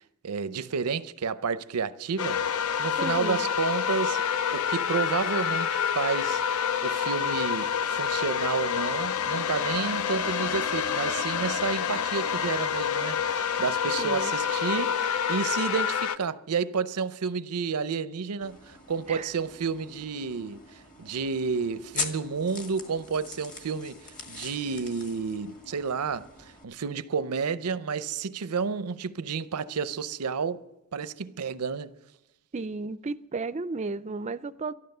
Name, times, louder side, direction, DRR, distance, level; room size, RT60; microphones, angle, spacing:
voice 1, 0.0-2.4 2.8-20.6 21.0-26.3 26.6-30.6 30.9-32.0, right 5 dB, 90° right, 0.6 m, -31 dB
sound 1, 2.2-16.2, left 8 dB, 70° left, 0.5 m, -28 dB
voice 2, 3.0-3.5 14.0-14.3 19.1-19.3 32.5-34.7, right 3 dB, 30° right, 0.4 m, -33 dB
sound 2, 18.4-26.6, left 4 dB, 35° left, 1.8 m, -41 dB
12.5 x 12.5 x 6.7 m
head